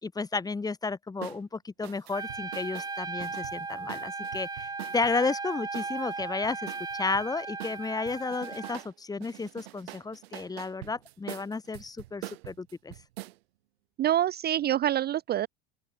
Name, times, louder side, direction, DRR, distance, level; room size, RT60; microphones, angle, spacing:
voice 1, 0.0-12.9, left 4 dB, 10° left, 0.9 m, -33 dB
sound 1, 1.2-1.4 1.8-5.2 5.7-7.3 7.6-8.9 9.2-13.4, right 17 dB, 80° right, 2.0 m, -44 dB
Trumpet, 2.1-8.8, right 4 dB, 15° right, 1.0 m, -37 dB
voice 2, 14.0-15.5, right 12 dB, 35° right, 0.5 m, -26 dB
open air
hypercardioid pair, 90°, 30 cm